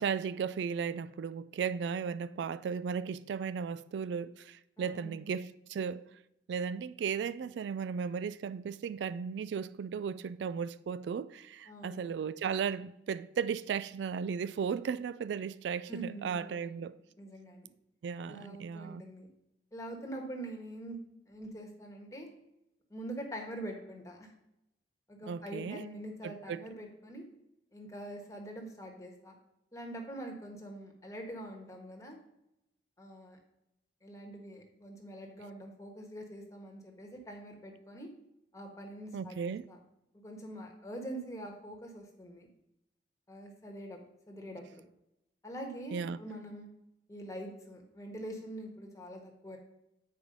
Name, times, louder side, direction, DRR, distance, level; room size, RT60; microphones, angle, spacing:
voice 1, 0.0-6.0 6.5-16.9 18.0-19.0 25.3-25.8 26.2-26.6 39.1-39.6 45.9-46.2, right 6 dB, 80° right, 0.3 m, -35 dB
voice 2, 4.8-5.2 11.7-12.0 15.9-16.9 17.2-17.7 18.3-19.3 19.7-21.0 21.3-22.3 22.9-24.3 25.1-27.3 27.7-29.3 29.7-32.2 33.0-33.4 34.0-38.1 38.5-39.8 40.1-42.5 43.3-44.0 44.3-44.8 45.4-46.7 47.1-49.6, right 1 dB, 20° left, 1.3 m, -44 dB
8.4 x 4.8 x 5.2 m
head